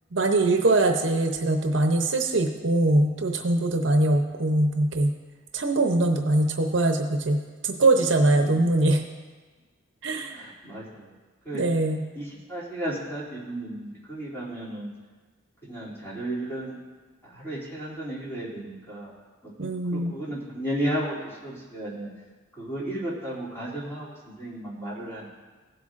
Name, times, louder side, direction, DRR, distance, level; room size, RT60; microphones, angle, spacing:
voice 1, 0.1-5.1 5.5-9.0 10.0-10.4 11.5-12.0 19.6-20.2, right 2 dB, 65° right, 5 dB, 0.8 m, -22 dB
voice 2, 10.4-11.1 11.4-11.6 12.1-14.9 15.6-16.8 17.2-19.1 19.4-19.5 19.9-21.2 21.4-22.1 22.6-24.1 24.4-25.3, right 1 dB, 10° left, -8 dB, 2.8 m, -33 dB
17.0 x 7.9 x 2.5 m, 1.3 s
head